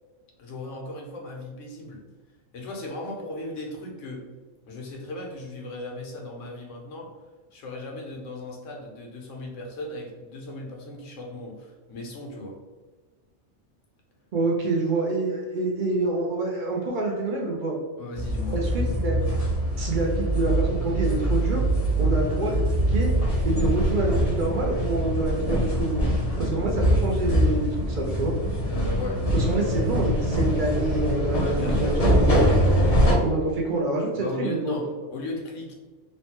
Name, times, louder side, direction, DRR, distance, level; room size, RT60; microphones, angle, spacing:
voice 1, 0.4-2.0 2.5-4.2 4.7-7.1 7.5-12.6 18.0-18.6 28.6-29.2 29.6-29.7 31.3-32.0 34.2-35.7, left 2 dB, 80° left, 0 dB, 1.1 m, -36 dB
voice 2, 14.3-17.8 18.5-19.3 19.8-21.6 22.0-23.1 23.4-26.0 26.4-28.3 29.3-32.7 33.2-34.8, right 2 dB, 55° right, -2 dB, 0.5 m, -27 dB
sound 1, 18.2-33.1, equal, 35° left, 0.6 m, -23 dB
3.1 x 2.1 x 2.8 m, 1.3 s
omnidirectional pair, 1.3 m